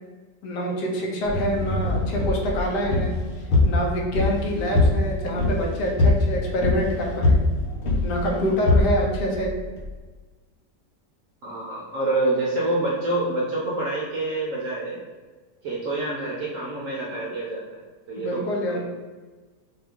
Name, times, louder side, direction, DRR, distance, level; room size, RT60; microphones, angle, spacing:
voice 1, 0.4-3.1 3.6-7.4 8.0-9.5 18.2-18.8, equal, 75° left, -1 dB, 1.3 m, -26 dB
sound 1, 1.2-9.9, left 2 dB, 55° left, 0.7 m, -23 dB
voice 2, 11.4-15.0 15.6-18.8, right 2 dB, 65° right, -4 dB, 0.8 m, -27 dB
4.2 x 2.3 x 3.5 m, 1.3 s
omnidirectional pair, 1.9 m